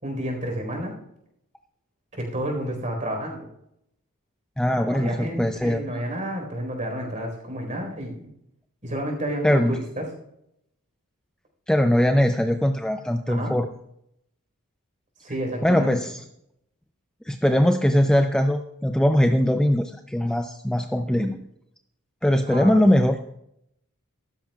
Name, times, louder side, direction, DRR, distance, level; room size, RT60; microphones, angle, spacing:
voice 1, 0.0-0.9 2.2-3.5 4.8-8.3 8.8-10.1 13.3-13.5 15.2-16.0 21.1-21.3 22.5-22.9, right 1 dB, 35° right, 1 dB, 4.2 m, -30 dB
voice 2, 4.6-5.8 9.4-9.8 11.7-13.7 15.6-16.2 17.3-21.4 22.2-23.2, equal, 5° left, 5 dB, 0.4 m, -21 dB
15.0 x 13.0 x 2.4 m, 0.77 s
head